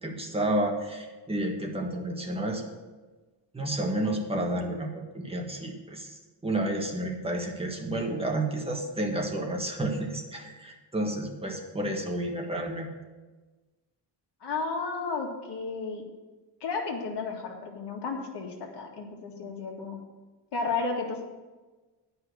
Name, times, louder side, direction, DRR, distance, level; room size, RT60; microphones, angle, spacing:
voice 1, 0.0-2.6 3.5-12.9, right 1 dB, 15° right, 1 dB, 1.5 m, -31 dB
voice 2, 14.4-16.0 16.6-20.0 20.5-21.2, left 4 dB, 70° left, 1 dB, 1.9 m, -33 dB
9.7 x 5.7 x 7.9 m, 1.2 s
wide cardioid pair, 155°, 42 cm